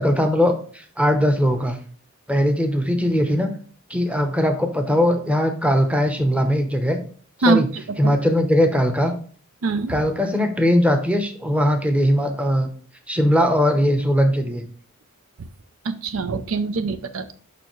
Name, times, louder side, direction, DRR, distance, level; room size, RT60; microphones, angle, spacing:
voice 1, 0.0-1.8 2.3-3.5 3.9-7.0 7.4-7.7 8.0-9.1 9.9-12.7 13.1-14.7, equal, 5° right, 6 dB, 0.8 m, -20 dB
voice 2, 9.6-10.0 16.0-17.3, right 3 dB, 70° right, 11 dB, 0.5 m, -22 dB
6.8 x 5.4 x 3.1 m, 0.44 s
head